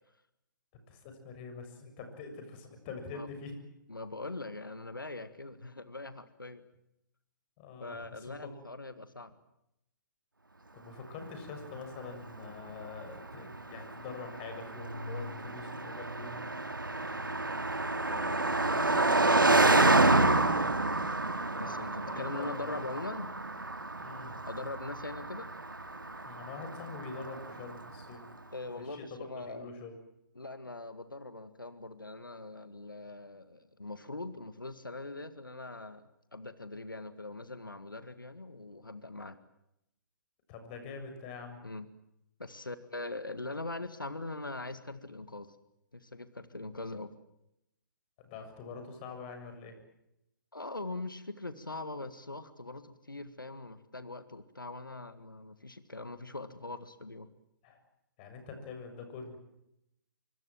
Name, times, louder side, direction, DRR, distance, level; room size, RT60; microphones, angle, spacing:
voice 1, 0.9-3.6 7.6-8.4 10.7-16.4 21.6-22.8 24.0-24.3 26.3-28.2 28.9-29.0 29.4-29.9 40.5-41.6 48.2-49.8 57.6-57.8 58.2-59.4, left 4 dB, 30° left, 6 dB, 7.0 m, -45 dB
voice 2, 3.9-6.6 7.8-9.3 18.1-20.4 21.6-23.3 24.5-25.5 28.5-29.7 30.4-39.4 41.6-41.9 42.4-45.6 45.9-47.1 50.5-57.3, left 2 dB, 85° left, 12 dB, 1.9 m, -42 dB
Car passing by, 11.5-27.9, right 2 dB, 85° right, 2.1 m, -29 dB
25.5 x 25.0 x 7.6 m, 0.83 s
figure-of-eight pair, 125°, 11 cm